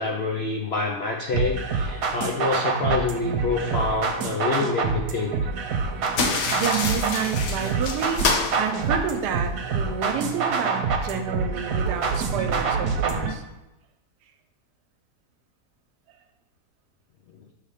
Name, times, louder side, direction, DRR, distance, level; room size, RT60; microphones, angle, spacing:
voice 1, 0.0-5.3, left 3 dB, 65° left, 0 dB, 0.6 m, -27 dB
sound 1, 1.3-13.3, right 5 dB, 65° right, 1.1 m, -26 dB
sound 2, 6.1-9.5, left 4 dB, 90° left, 1.4 m, -27 dB
voice 2, 6.5-8.3 8.6-13.4, right 7 dB, 85° right, 6 dB, 1.2 m, -29 dB
5.7 x 3.4 x 4.9 m, 0.95 s
omnidirectional pair, 1.7 m